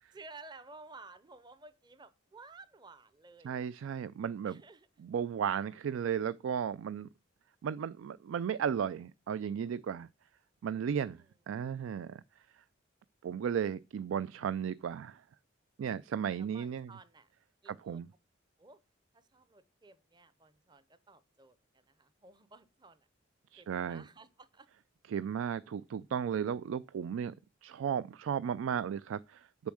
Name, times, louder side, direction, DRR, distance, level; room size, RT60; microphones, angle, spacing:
voice 1, 0.1-3.6 3.9-4.0 4.4-5.1 11.1-11.2 16.4-17.3 17.6-18.0 18.6-18.8 19.1-23.1 23.6-24.7, right 3 dB, 20° right, 0.6 m, -55 dB
voice 2, 3.4-4.6 5.0-7.1 7.6-10.1 10.6-11.2 11.5-12.2 13.2-15.2 15.8-16.9 17.7-18.1 23.5-24.0 25.1-27.3 27.6-29.7, right 8 dB, 85° right, 0.3 m, -35 dB
6.9 x 5.3 x 6.2 m
head